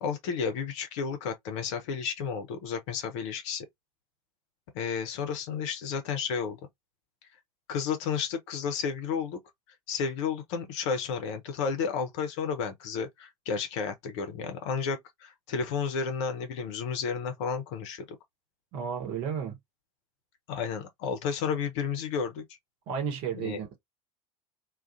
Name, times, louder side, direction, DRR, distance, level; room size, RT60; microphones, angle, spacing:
voice 1, 0.0-3.7 4.7-6.6 7.7-9.4 9.9-18.0 20.5-22.4 23.3-23.6, left 6 dB, 55° left, 0.7 m, -32 dB
voice 2, 18.7-19.6 22.9-23.8, right 7 dB, 50° right, 1.0 m, -33 dB
2.3 x 2.2 x 2.5 m
figure-of-eight pair, 75°, 18 cm